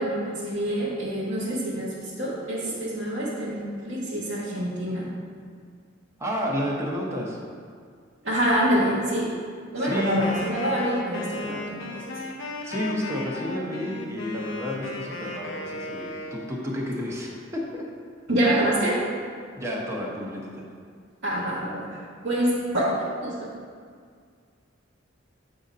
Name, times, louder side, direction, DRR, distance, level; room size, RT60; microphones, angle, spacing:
voice 1, 0.0-5.1 8.2-9.4 9.7-12.3 18.3-19.0 21.2-23.5, right 1 dB, 65° right, -7 dB, 1.1 m, -26 dB
voice 2, 6.2-7.4 9.8-10.3 12.6-17.9 19.6-20.7, left 1 dB, 15° right, -3 dB, 0.9 m, -31 dB
Wind instrument woodwind instrument, 9.8-16.5, left 2 dB, 85° left, 0.7 m, -35 dB
7.8 x 2.7 x 5.1 m, 2.1 s
head